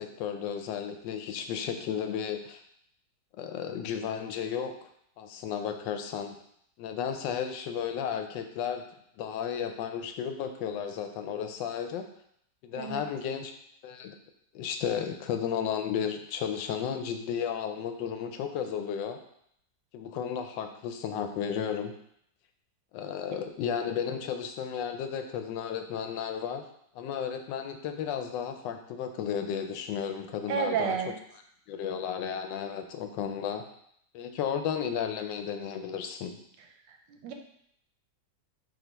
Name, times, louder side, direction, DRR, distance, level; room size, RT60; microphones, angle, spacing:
voice 1, 0.0-2.6 3.4-4.9 5.2-6.4 6.8-8.8 9.2-12.0 12.6-13.5 13.8-14.2 14.5-19.2 19.9-21.9 22.9-26.6 26.9-31.0 31.7-33.6 34.1-36.4, left 8 dB, 90° left, 6 dB, 1.3 m, -33 dB
voice 2, 12.7-13.0 30.5-31.2 37.1-37.3, right 6 dB, 90° right, 4 dB, 1.3 m, -30 dB
4.9 x 2.3 x 4.5 m, 0.70 s
omnidirectional pair, 1.9 m